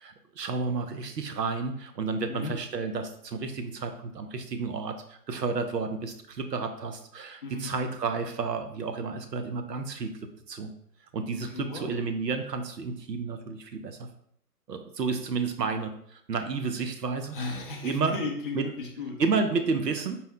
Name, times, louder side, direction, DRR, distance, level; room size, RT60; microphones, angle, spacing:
voice 1, 0.0-10.1 10.5-10.7 11.1-14.1 14.7-17.4 17.8-18.2 18.5-18.7 19.2-20.2, right 4 dB, 80° right, 7 dB, 0.7 m, -31 dB
voice 2, 7.4-7.7 11.5-11.9 17.3-19.2, left 3 dB, 35° left, -1 dB, 0.5 m, -35 dB
4.3 x 2.1 x 3.5 m, 0.67 s
figure-of-eight pair, 140°, 49 cm